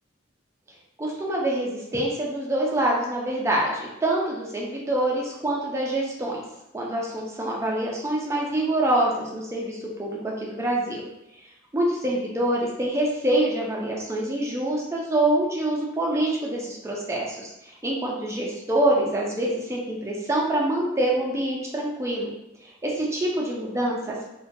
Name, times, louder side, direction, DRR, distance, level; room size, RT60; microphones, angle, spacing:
voice 1, 1.0-6.4 6.7-11.0 11.7-22.3 22.6-24.2, right 1 dB, 15° right, -3 dB, 0.4 m, -26 dB
2.3 x 2.2 x 2.6 m, 0.91 s
head